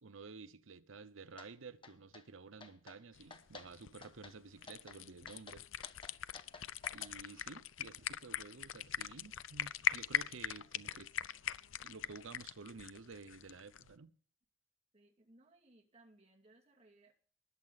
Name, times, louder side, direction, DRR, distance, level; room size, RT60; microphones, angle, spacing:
voice 1, 0.0-5.7 6.9-11.1 11.8-14.1, right 4 dB, 85° right, 0.8 m, -52 dB
sound 1, 1.4-1.5 1.8-2.2 2.6-3.0 3.3-3.7 4.0-4.4 4.7-5.0 5.3-7.1, left 4 dB, 25° left, 1.2 m, -53 dB
sound 2, 3.1-13.9, left 10 dB, 80° left, 0.5 m, -41 dB
voice 2, 14.9-17.1, right 2 dB, 30° right, 2.4 m, -65 dB
20.0 x 7.5 x 4.1 m
head